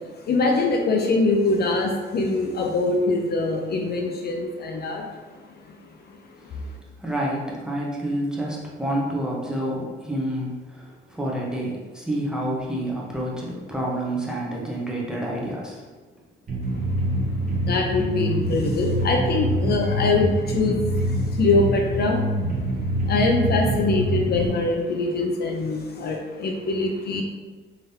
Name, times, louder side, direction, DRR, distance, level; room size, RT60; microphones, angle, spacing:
voice 1, 0.2-5.1 5.7-5.8 17.4-22.3 23.1-27.2, left 3 dB, 55° left, 2 dB, 0.5 m, -23 dB
voice 2, 7.0-10.8 11.1-15.8, right 1 dB, 5° right, -4 dB, 0.9 m, -28 dB
sound 1, 16.5-24.5, right 1 dB, 45° right, 1.0 m, -25 dB
3.7 x 3.5 x 2.8 m, 1.4 s
cardioid pair, 90°, 20 cm